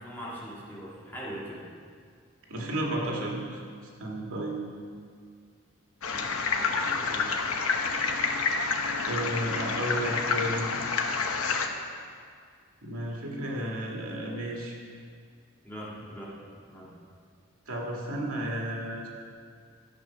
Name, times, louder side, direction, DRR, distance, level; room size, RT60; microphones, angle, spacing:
voice 1, 0.0-1.6 6.0-7.3 15.6-16.4 16.7-16.9, equal, 10° left, -7 dB, 2.2 m, -41 dB
voice 2, 2.5-3.6 4.0-4.6 9.1-10.7 12.8-14.8 17.7-19.1, right 1 dB, 85° right, -2 dB, 2.2 m, -32 dB
sound 1, 6.0-11.7, left 4 dB, 85° left, 0.9 m, -28 dB
13.0 x 7.4 x 5.9 m, 2.1 s
head